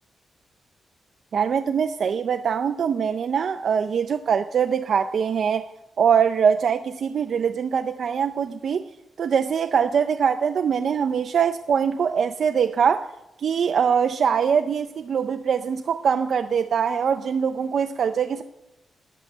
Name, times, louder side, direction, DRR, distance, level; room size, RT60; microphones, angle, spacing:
voice 1, 1.3-5.7 6.0-8.9 9.2-13.1 13.4-18.4, right 7 dB, 50° right, 0.4 m, -23 dB
10.0 x 8.1 x 9.8 m
wide cardioid pair, 165°, 0 cm